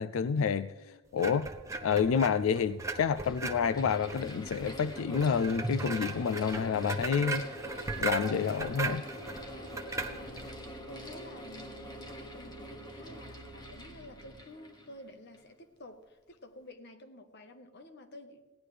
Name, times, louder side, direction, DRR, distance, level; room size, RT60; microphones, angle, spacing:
voice 1, 0.0-0.7 1.1-1.5 1.8-7.4 8.0-9.0, left 6 dB, 90° left, 14 dB, 0.4 m, -29 dB
sound 1, 1.2-10.5, right 3 dB, 15° right, 0.9 m, -38 dB
Mechanical fan, 1.9-2.0 2.9-15.5, equal, 20° left, 1.3 m, -46 dB
sound 2, 9.1-14.4, right 1 dB, 75° right, 1.3 m, -52 dB
voice 2, 9.2-10.6 10.9-18.4, left 1 dB, 55° left, 7 dB, 1.2 m, -51 dB
17.0 x 11.0 x 3.3 m, 1.2 s
head